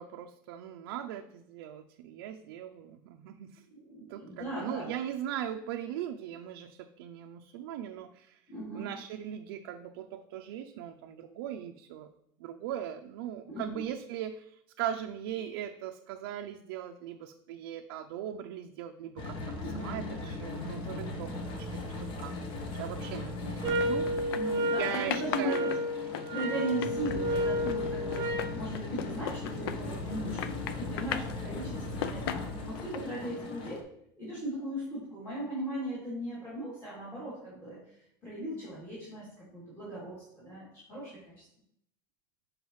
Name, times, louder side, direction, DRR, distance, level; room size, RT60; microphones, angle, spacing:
voice 1, 0.0-3.6 4.1-8.4 8.7-12.1 12.4-22.3 22.7-24.4 24.8-25.8, right 10 dB, 85° right, 4 dB, 0.5 m, -39 dB
voice 2, 3.7-4.9 8.5-8.9 13.5-13.9 19.6-20.2 24.3-25.7 26.3-33.8 34.2-37.8 38.2-41.4, right 1 dB, 20° left, -9 dB, 2.7 m, -38 dB
sound 1, 19.2-33.8, left 3 dB, 45° left, 1.0 m, -38 dB
sound 2, 23.6-24.7 24.9-30.1 30.4-31.4 31.8-33.0, left 10 dB, 90° left, 0.4 m, -37 dB
sound 3, 23.6-28.6, equal, 30° right, 1.0 m, -31 dB
7.2 x 5.0 x 3.1 m, 0.72 s
supercardioid pair, 140°, 12 cm